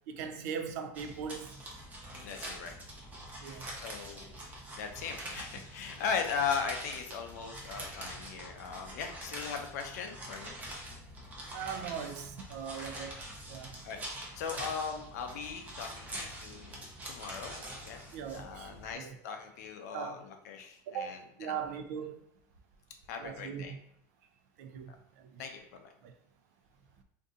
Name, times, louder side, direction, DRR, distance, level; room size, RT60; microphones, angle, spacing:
voice 1, 0.1-1.5 3.4-3.7 11.5-13.2 13.5-13.8 18.0-19.2 19.9-20.3 20.9-22.2 23.2-23.8 24.6-25.4 26.0-26.1, right 7 dB, 70° right, 0.5 m, -40 dB
sound 1, 0.9-18.9, right 1 dB, 20° right, 0.6 m, -45 dB
voice 2, 2.1-2.7 3.4-4.3 4.8-10.6 12.7-12.9 13.8-14.0 14.4-17.6 17.9-18.0 18.3-21.6 23.1-23.7 25.4-25.9, left 6 dB, 85° left, 0.6 m, -38 dB
2.7 x 2.5 x 3.7 m
supercardioid pair, 145°, 9 cm